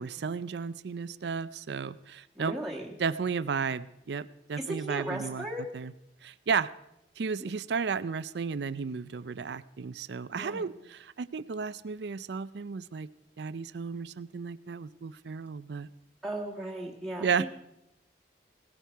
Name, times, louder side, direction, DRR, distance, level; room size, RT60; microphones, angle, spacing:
voice 1, 0.0-2.6 3.0-5.5 5.7-5.9 6.2-6.7 7.2-13.1 13.4-15.9 17.2-17.4, right 5 dB, 75° right, 17 dB, 0.5 m, -33 dB
voice 2, 2.4-2.9 4.6-5.7 7.4-7.5 10.3-10.7 16.2-17.5, right 1 dB, ahead, -4 dB, 1.6 m, -36 dB
17.5 x 13.0 x 4.5 m, 0.85 s
head